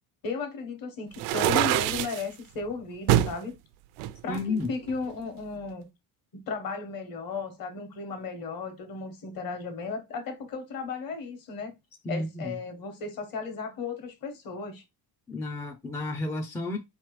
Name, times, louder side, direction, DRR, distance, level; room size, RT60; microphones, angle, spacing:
voice 1, 0.2-3.6 4.2-5.9 6.3-11.7 12.1-14.8, left 4 dB, 50° left, 1.3 m, -35 dB
sound 1, 1.1-2.2 3.1-3.4 4.0-5.1, right 13 dB, 80° right, 0.5 m, -25 dB
voice 2, 4.3-4.7 12.0-12.6 15.3-16.8, left 2 dB, 5° left, 0.3 m, -32 dB
4.4 x 3.1 x 3.1 m
cardioid pair, 145°, 44 cm